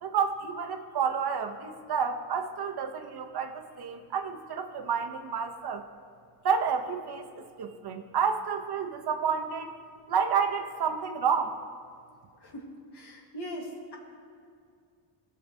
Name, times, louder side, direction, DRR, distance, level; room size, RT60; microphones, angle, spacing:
voice 1, 0.0-5.8 6.4-9.7 10.1-11.5, right 6 dB, 55° right, 5 dB, 0.8 m, -30 dB
voice 2, 12.4-14.0, equal, 60° left, 0 dB, 1.7 m, -41 dB
19.0 x 6.6 x 2.7 m, 2.2 s
cardioid pair, 105°, 46 cm